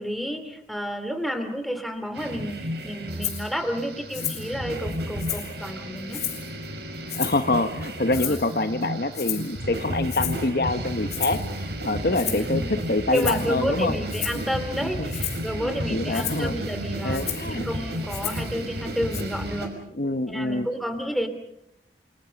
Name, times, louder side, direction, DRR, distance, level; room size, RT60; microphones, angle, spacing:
voice 1, 0.0-6.2 8.1-8.4 12.2-12.8 13.1-19.8 20.3-21.3, equal, ahead, 8 dB, 2.7 m, -31 dB
sound 1, 2.1-19.7, equal, 75° right, 5.2 m, -33 dB
Rattle (instrument), 3.2-3.4 4.1-4.5 4.9-5.6 6.1-6.5 7.1-7.5 8.1-8.6 9.1-9.5 10.1-10.5 11.1-11.5 12.1-12.5 13.1-13.5 14.1-14.5 15.1-15.5 16.1-16.4 17.1-17.5 18.1-18.5 19.1-19.2, left 11 dB, 40° left, 3.6 m, -32 dB
voice 2, 7.2-13.9 14.8-15.1 15.6-16.6 17.0-17.6 20.0-20.7, left 2 dB, 55° left, 9 dB, 1.0 m, -26 dB
30.0 x 25.0 x 5.3 m, 0.76 s
head